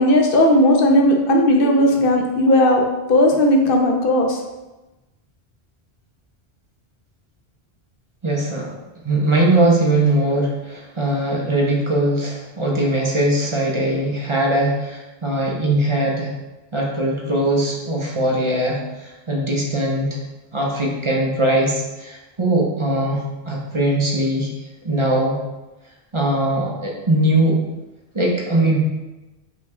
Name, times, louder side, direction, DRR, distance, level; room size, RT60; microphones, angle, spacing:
voice 1, 0.0-2.8 3.1-4.4, left 1 dB, 60° left, 1 dB, 0.8 m, -16 dB
voice 2, 8.2-8.7 9.0-16.3 16.7-20.2 20.5-24.5 24.8-25.4 26.1-27.6 28.1-28.8, right 1 dB, 35° right, -2 dB, 0.6 m, -20 dB
5.3 x 2.3 x 3.4 m, 1.1 s
omnidirectional pair, 1.1 m